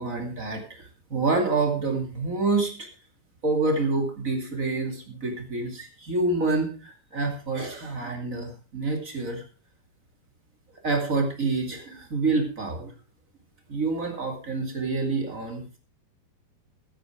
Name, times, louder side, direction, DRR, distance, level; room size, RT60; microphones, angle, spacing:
voice 1, 0.0-2.9 3.4-9.4 10.8-12.9 13.7-15.8, right 3 dB, 25° right, 2 dB, 1.8 m, -27 dB
15.0 x 9.2 x 4.9 m, 0.35 s
omnidirectional pair, 5.1 m